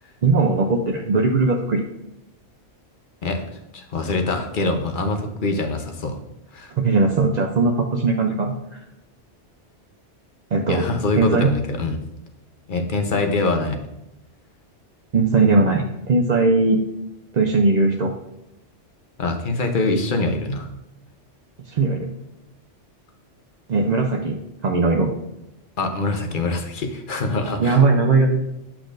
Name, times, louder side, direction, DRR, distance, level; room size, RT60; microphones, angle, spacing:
voice 1, 0.2-1.8 6.7-8.5 10.5-10.8 11.2-11.5 15.1-16.8 17.3-18.1 21.7-22.1 23.7-25.1 27.6-28.4, right 3 dB, 50° right, 2 dB, 0.5 m, -19 dB
voice 2, 3.7-6.2 6.5-6.7 10.7-12.0 12.7-13.8 19.2-20.7 25.8-27.8, left 2 dB, 45° left, 5 dB, 0.9 m, -24 dB
8.3 x 5.9 x 2.5 m, 0.91 s
omnidirectional pair, 1.2 m